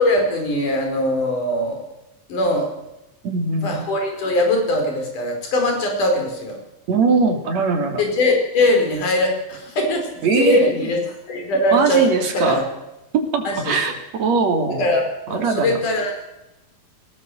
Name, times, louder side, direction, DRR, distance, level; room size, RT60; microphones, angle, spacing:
voice 1, 0.0-1.9 2.3-2.7 3.6-6.6 8.0-11.0 11.3-12.6 13.4-13.8 14.7-15.0 15.3-16.3, left 1 dB, 60° left, 3 dB, 6.3 m, -21 dB
voice 2, 3.2-3.8 6.9-8.0 10.2-10.7 11.7-12.7 13.1-13.9 14.2-14.8 15.3-15.8, right 4 dB, 50° right, 4 dB, 3.9 m, -20 dB
19.5 x 19.0 x 7.9 m, 0.91 s
omnidirectional pair, 4.0 m